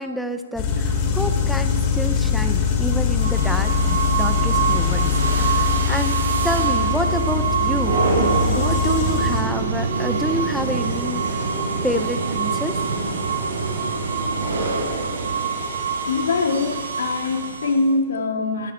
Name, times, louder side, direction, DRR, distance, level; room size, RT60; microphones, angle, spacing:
voice 1, 0.0-11.2 11.8-12.8, equal, ahead, 7 dB, 0.6 m, -28 dB
sound 1, 0.5-9.4, left 6 dB, 25° left, 2.7 m, -22 dB
sound 2, 3.2-17.9, right 5 dB, 80° right, 5.0 m, -24 dB
voice 2, 16.0-18.7, left 3 dB, 80° left, 4 dB, 2.5 m, -23 dB
20.0 x 14.0 x 4.4 m, 1.3 s
hypercardioid pair, 170°, 0 cm